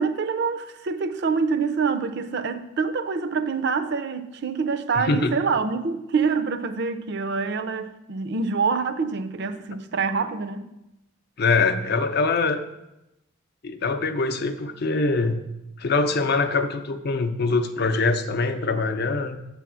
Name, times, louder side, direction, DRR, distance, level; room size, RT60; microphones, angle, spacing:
voice 1, 0.0-10.7, right 5 dB, 55° right, 0.5 m, -26 dB
voice 2, 5.0-5.3 11.4-12.6 13.6-15.4 15.8-19.4, left 3 dB, 50° left, 0.5 m, -23 dB
7.8 x 3.4 x 6.1 m
head